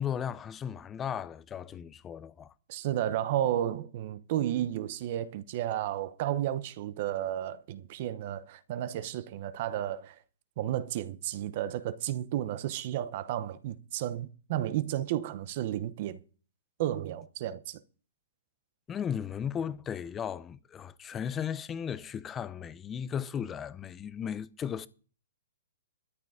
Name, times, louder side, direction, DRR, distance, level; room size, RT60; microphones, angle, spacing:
voice 1, 0.0-2.5 18.9-24.9, left 8 dB, 15° left, 0.7 m, -36 dB
voice 2, 2.7-10.2 10.6-16.2 16.8-17.8, right 12 dB, 40° right, 0.9 m, -32 dB
13.0 x 9.7 x 5.0 m
hypercardioid pair, 155°, 0 cm